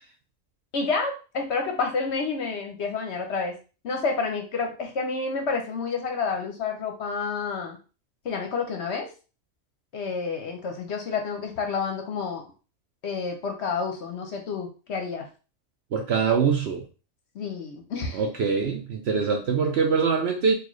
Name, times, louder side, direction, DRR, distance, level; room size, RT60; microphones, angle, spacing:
voice 1, 0.7-3.5 3.8-7.8 8.2-9.1 9.9-12.4 13.0-15.3 17.3-18.2, left 4 dB, 60° left, 4 dB, 0.9 m, -29 dB
voice 2, 15.9-16.8 18.1-20.5, right 5 dB, 60° right, 3 dB, 0.7 m, -23 dB
4.1 x 2.4 x 3.0 m, 0.34 s
omnidirectional pair, 1.5 m